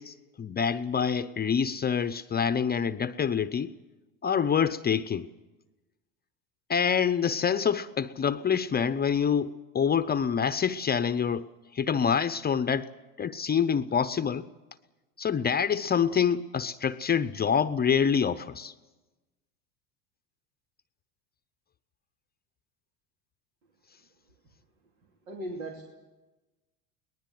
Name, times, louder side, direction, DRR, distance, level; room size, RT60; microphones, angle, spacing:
voice 1, 0.0-3.7 4.2-5.3 6.7-11.5 11.7-12.9 13.2-14.5 15.2-18.7, left 7 dB, 25° left, 0.7 m, -26 dB
voice 2, 25.3-25.9, right 1 dB, 90° right, 2.9 m, -37 dB
23.0 x 19.5 x 7.9 m
supercardioid pair, 100°, 40 cm